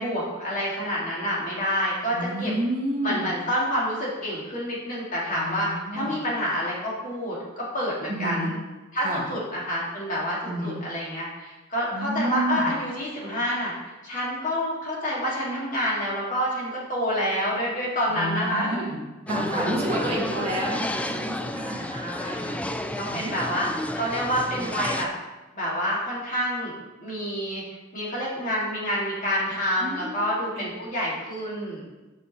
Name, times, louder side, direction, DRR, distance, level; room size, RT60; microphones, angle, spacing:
voice 1, 0.0-2.5 3.0-8.6 8.9-13.7 14.0-18.9 19.9-20.1 21.9-22.5 23.0-25.1 25.5-26.7 27.0-27.6 27.9-31.8, equal, 45° left, -5 dB, 2.2 m, -28 dB
voice 2, 2.1-3.3 5.3-6.1 8.1-8.5 9.0-9.2 10.4-10.8 11.9-12.7 18.1-19.0 19.3-21.9 22.2-22.6 23.0-23.7 29.8-30.6, right 1 dB, 30° right, -5 dB, 2.0 m, -30 dB
sound 1, 19.3-25.1, left 1 dB, 5° left, 0.3 m, -31 dB
7.0 x 5.5 x 4.2 m, 1.1 s
head